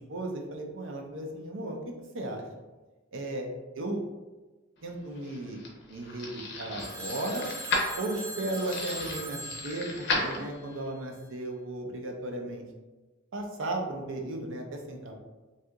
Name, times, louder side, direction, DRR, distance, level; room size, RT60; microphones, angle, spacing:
voice 1, 0.0-2.4 3.1-3.5 3.7-4.0 4.8-5.6 5.9-7.5 8.0-12.6 13.3-15.1, right 1 dB, 70° right, 2 dB, 0.5 m, -35 dB
sound 1, 4.9-10.9, left 2 dB, 60° left, 0.6 m, -35 dB
Telephone, 6.8-11.0, right 1 dB, 15° right, 0.3 m, -41 dB
2.7 x 2.4 x 3.5 m, 1.2 s
head